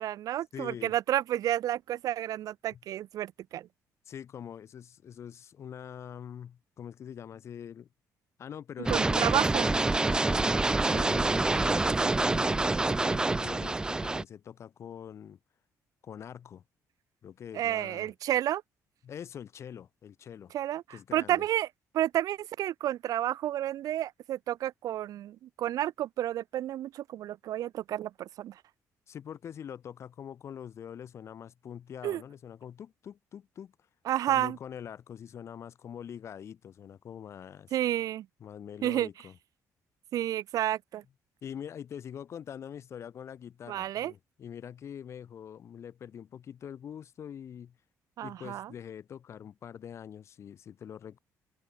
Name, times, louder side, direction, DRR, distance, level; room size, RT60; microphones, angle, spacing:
voice 1, 0.0-3.7 8.9-9.7 17.5-18.6 20.5-21.7 21.9-28.5 32.0-32.2 34.1-34.6 37.7-38.3 38.8-39.1 40.1-41.0 43.7-44.1 48.2-48.7, right 12 dB, 70° right, 2.9 m, -31 dB
voice 2, 0.5-1.0 2.7-2.8 4.1-7.9 8.4-9.4 9.9-15.4 16.0-16.6 17.2-18.1 19.0-20.5 20.9-21.5 29.1-33.7 34.3-37.8 38.4-39.4 41.4-47.8 48.2-51.2, left 8 dB, 50° left, 3.6 m, -44 dB
sound 1, 8.9-14.2, right 2 dB, 10° right, 0.9 m, -26 dB
cardioid pair, 150°, 6 cm